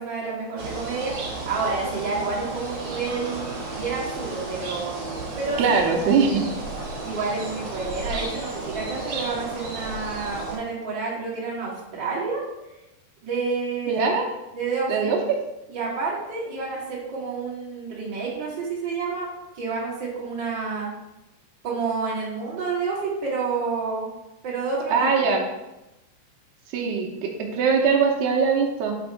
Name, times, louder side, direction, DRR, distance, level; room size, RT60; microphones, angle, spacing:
voice 1, 0.0-5.0 5.4-6.3 7.0-12.4 13.2-14.1 14.5-15.1 15.7-20.9 21.6-24.1 24.4-25.3, right 4 dB, 40° right, -6 dB, 1.7 m, -29 dB
sound 1, 0.6-10.6, right 3 dB, 55° right, 1.8 m, -33 dB
voice 2, 5.6-6.4 13.9-14.3 14.9-15.4 24.9-25.4 26.7-28.9, right 5 dB, 80° right, 1 dB, 2.7 m, -21 dB
6.1 x 5.2 x 4.6 m, 0.97 s
omnidirectional pair, 4.9 m